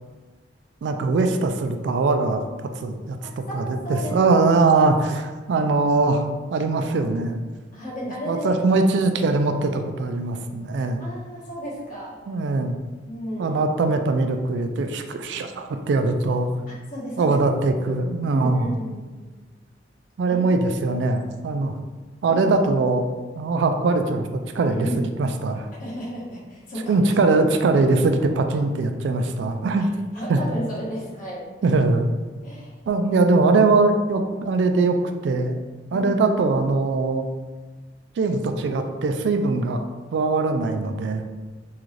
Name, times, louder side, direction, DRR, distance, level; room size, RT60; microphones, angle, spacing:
voice 1, 0.8-3.2 3.5-6.2 6.5-7.4 8.3-11.1 12.3-12.8 13.4-16.5 17.2-18.7 20.2-21.8 22.2-23.1 23.4-25.7 26.9-29.9 30.3-30.4 31.6-32.1 32.9-35.0 35.2-35.6 35.9-37.3 38.2-39.8 40.1-41.2, right 3 dB, 70° right, 6 dB, 0.3 m, -21 dB
voice 2, 3.5-4.2 7.7-8.6 11.0-12.2 13.0-13.6 16.7-17.4 18.3-19.0 20.2-20.4 20.8-21.0 22.3-22.5 24.6-25.0 25.8-27.1 30.1-31.4 32.4-33.1 35.9-36.1, equal, 50° left, -7 dB, 1.2 m, -33 dB
3.7 x 2.4 x 3.1 m, 1.3 s
head